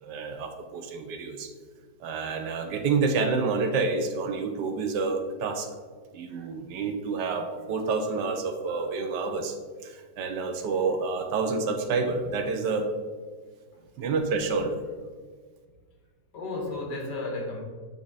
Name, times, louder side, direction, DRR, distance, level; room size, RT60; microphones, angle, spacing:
voice 1, 0.0-1.5 2.0-5.7 6.1-9.5 9.8-12.9 14.0-14.8, right 4 dB, 75° right, 5 dB, 1.3 m, -28 dB
voice 2, 16.3-17.6, left 2 dB, 70° left, 0 dB, 1.9 m, -34 dB
8.5 x 3.6 x 3.9 m, 1.5 s
omnidirectional pair, 2.0 m